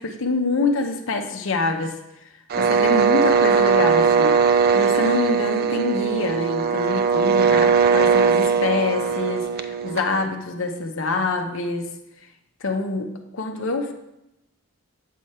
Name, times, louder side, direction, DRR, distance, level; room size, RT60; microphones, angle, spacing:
voice 1, 0.0-2.0 2.6-4.4 4.7-11.9 12.6-13.9, left 3 dB, 60° left, 4 dB, 0.8 m, -26 dB
sound 1, 2.5-10.3, right 5 dB, 45° right, 0.3 m, -19 dB
8.4 x 5.1 x 4.3 m, 0.88 s
head